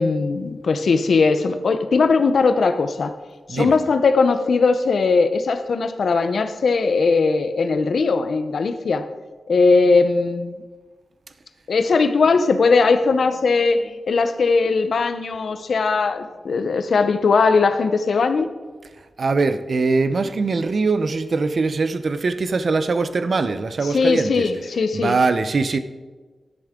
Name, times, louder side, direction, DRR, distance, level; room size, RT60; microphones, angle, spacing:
voice 1, 0.0-3.1 3.5-9.1 9.5-10.6 11.7-18.5 23.8-25.2, left 4 dB, 70° left, 10 dB, 0.7 m, -19 dB
voice 2, 19.2-24.5 24.9-25.8, right 4 dB, 50° right, 11 dB, 0.6 m, -22 dB
12.5 x 10.5 x 3.7 m, 1.4 s
wide cardioid pair, 135°, 0 cm